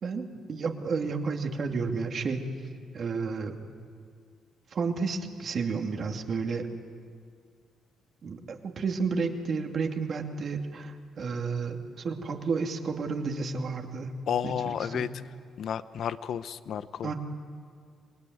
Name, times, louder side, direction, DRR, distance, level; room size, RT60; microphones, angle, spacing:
voice 1, 0.0-2.4 2.9-3.6 4.7-6.7 8.2-14.1 14.4-15.1 17.0-17.1, right 4 dB, 50° right, 4 dB, 2.5 m, -31 dB
voice 2, 14.3-15.1 15.6-17.1, left 8 dB, 65° left, 14 dB, 0.9 m, -32 dB
26.0 x 20.5 x 9.4 m, 2.1 s
cardioid pair, 90°, 0 cm